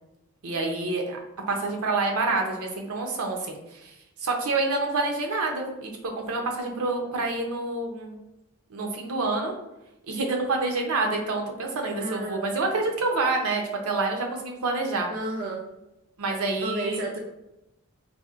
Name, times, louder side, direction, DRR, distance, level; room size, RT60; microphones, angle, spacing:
voice 1, 0.4-1.2 1.5-3.9 4.2-8.2 8.7-9.5 10.1-15.1 16.2-17.0, right 3 dB, 80° right, 1 dB, 0.7 m, -27 dB
voice 2, 12.0-12.5 15.1-15.6 16.6-17.2, right 1 dB, 40° right, -1 dB, 0.4 m, -32 dB
4.1 x 2.6 x 2.4 m, 0.90 s
head